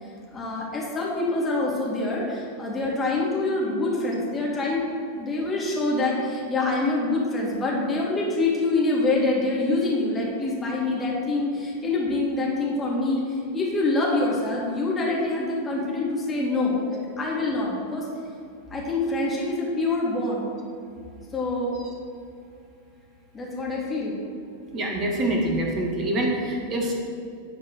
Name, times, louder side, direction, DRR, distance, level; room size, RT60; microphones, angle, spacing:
voice 1, 0.3-18.1 18.7-20.5 21.3-21.8 23.3-24.2, left 2 dB, 15° left, -4 dB, 2.6 m, -25 dB
voice 2, 24.7-26.9, right 1 dB, 30° right, 0 dB, 1.8 m, -25 dB
11.5 x 4.7 x 6.4 m, 2.5 s
figure-of-eight pair, 90°, 0 cm